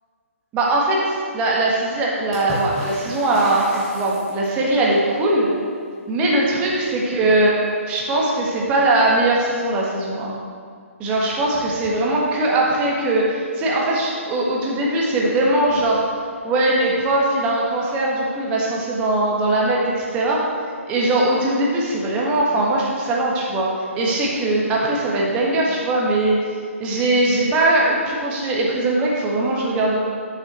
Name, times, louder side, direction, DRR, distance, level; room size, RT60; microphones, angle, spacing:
voice 1, 0.5-5.5 6.1-7.5 7.9-10.3 11.0-16.0 16.4-20.5 20.9-26.4 26.8-30.0, right 2 dB, 15° right, -3 dB, 1.3 m, -20 dB
Water / Splash splatter, 2.3-4.7 8.0-8.1 8.3-9.1 10.2-10.3, left 1 dB, 5° left, 1.5 m, -35 dB
8.0 x 6.8 x 4.2 m, 2.1 s
hypercardioid pair, 160°, 8 cm